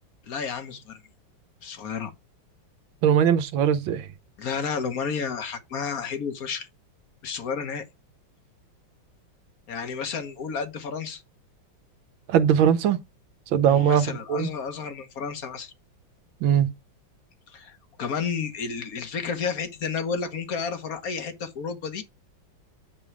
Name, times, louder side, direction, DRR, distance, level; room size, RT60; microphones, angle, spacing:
voice 1, 0.3-1.0 1.6-2.1 4.4-6.7 7.2-7.8 9.7-11.2 13.6-15.7 17.5-22.0, left 6 dB, 50° left, 1.5 m, -31 dB
voice 2, 3.0-4.1 12.3-13.0 13.5-14.0 14.3-14.5 16.4-16.7, right 8 dB, 80° right, 1.6 m, -20 dB
9.0 x 3.9 x 4.8 m
omnidirectional pair, 2.1 m